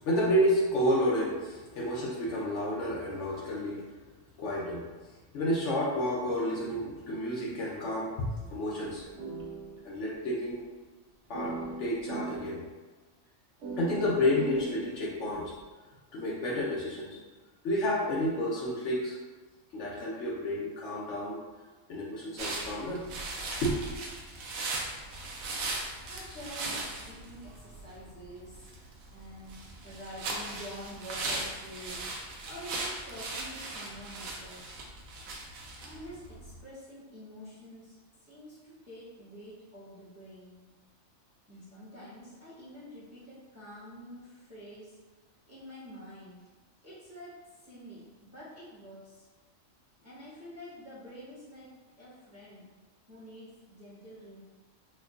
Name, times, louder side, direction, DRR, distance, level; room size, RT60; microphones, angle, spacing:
voice 1, 0.0-3.8 4.4-9.1 9.8-10.6 11.3-12.6 13.8-15.6 16.1-17.2 17.6-19.2 19.7-21.4 21.9-23.0 23.6-23.8, equal, 65° left, -5 dB, 0.9 m, -30 dB
sound 1, 8.8-10.1 10.4-10.5 11.3-12.6 13.6-15.6, right 3 dB, 65° right, 0.8 m, -40 dB
sound 2, 22.4-36.6, right 2 dB, 90° right, 1.0 m, -38 dB
voice 2, 26.0-28.7 29.1-34.9 35.8-37.9 38.2-40.8 41.5-45.2 45.4-46.5 46.8-49.3 50.0-52.7 53.1-54.4, equal, 15° right, -10 dB, 0.9 m, -47 dB
4.4 x 2.3 x 2.3 m, 1.3 s
omnidirectional pair, 1.4 m